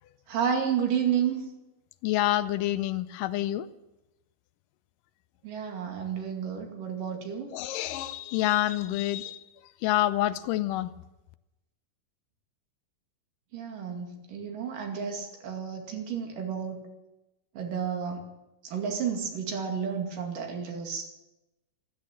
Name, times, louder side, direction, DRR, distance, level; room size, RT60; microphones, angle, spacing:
voice 1, 0.3-1.4 5.4-7.5 13.5-16.9 17.6-18.3 18.6-21.1, right 7 dB, 90° right, 2 dB, 4.0 m, -31 dB
voice 2, 2.0-3.7 7.5-9.4 9.8-10.9, left 14 dB, 85° left, 13 dB, 2.4 m, -27 dB
14.5 x 12.5 x 7.6 m, 0.96 s
omnidirectional pair, 3.7 m